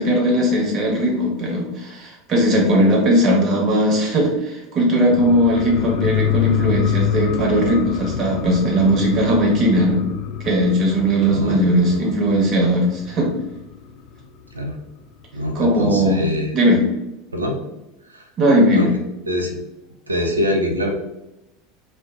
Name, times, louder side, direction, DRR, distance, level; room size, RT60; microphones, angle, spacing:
voice 1, 0.0-10.0 10.4-13.3 15.5-16.2 16.5-16.8 18.4-18.9, equal, 40° right, -1 dB, 1.0 m, -18 dB
sound 1, 5.0-14.2 14.5-14.6, left 9 dB, 60° left, 0.3 m, -26 dB
voice 2, 11.2-12.0 14.5-14.7 15.3-16.6 17.3-17.6 18.1-18.3 18.7-18.9 19.3-19.5 20.1-20.9, left 1 dB, 90° right, 3 dB, 0.5 m, -24 dB
2.4 x 2.1 x 3.5 m, 0.90 s
figure-of-eight pair, 80°, 0 cm